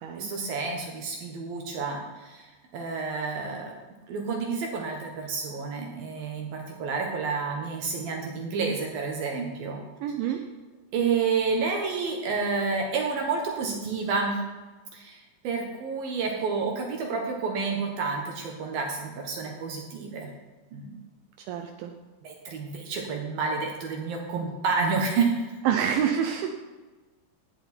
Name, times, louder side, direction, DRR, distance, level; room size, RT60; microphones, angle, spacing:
voice 1, 0.1-3.7 4.1-9.8 10.9-14.4 14.9-20.3 20.7-21.0 22.2-25.4, right 4 dB, 65° right, 1 dB, 2.6 m, -29 dB
voice 2, 10.0-10.4 21.5-21.9 25.7-26.5, right 9 dB, 80° right, 4 dB, 3.1 m, -27 dB
17.0 x 10.5 x 4.5 m, 1.3 s
omnidirectional pair, 5.6 m